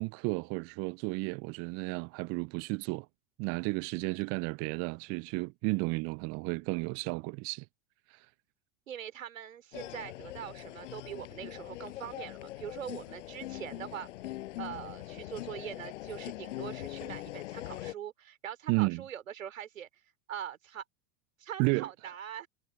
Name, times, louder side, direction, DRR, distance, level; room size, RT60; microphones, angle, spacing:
voice 1, 0.0-3.1 3.4-7.7 8.1-8.3 18.7-19.0 21.6-21.9, right 30 dB, 35° right, 0.5 m, -32 dB
voice 2, 8.9-14.1 14.6-19.9 20.3-20.8 21.4-22.5, right 10 dB, 75° right, 3.7 m, -42 dB
sound 1, 9.7-17.9, left 16 dB, 65° left, 6.0 m, -42 dB
figure-of-eight pair, 85°, 40 cm